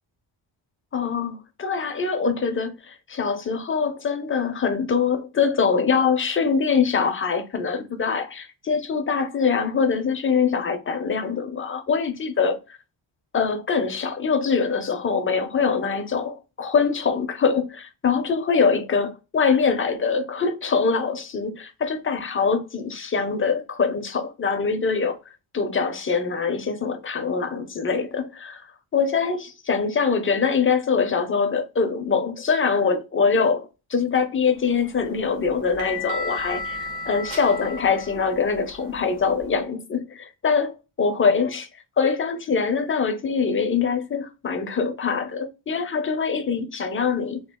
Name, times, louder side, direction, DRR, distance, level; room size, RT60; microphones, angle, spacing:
voice 1, 0.9-12.6 13.3-25.2 25.5-28.7 28.9-40.7 41.0-41.7 42.0-47.4, left 5 dB, 25° left, 0.4 m, -23 dB
sound 1, 34.7-39.5, left 3 dB, 75° right, 1.1 m, -34 dB
2.9 x 2.3 x 3.4 m
wide cardioid pair, 160°, 48 cm